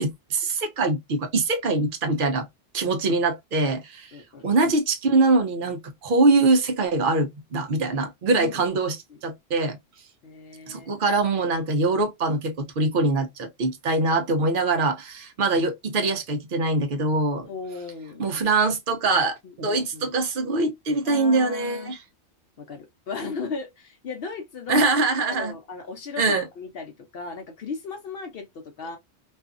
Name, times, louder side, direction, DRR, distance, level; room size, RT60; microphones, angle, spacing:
voice 1, 0.0-2.5 2.7-4.1 4.4-9.0 9.2-9.8 10.7-17.5 18.2-22.0 24.7-25.5 26.2-26.4, right 3 dB, 55° right, 0.7 m, -23 dB
voice 2, 4.1-4.4 8.3-8.8 9.1-9.2 10.2-10.9 17.5-18.3 19.4-20.1 21.0-22.0 22.6-24.9 25.2-29.0, left 4 dB, 65° left, 0.8 m, -36 dB
2.6 x 2.3 x 2.4 m
omnidirectional pair, 1.2 m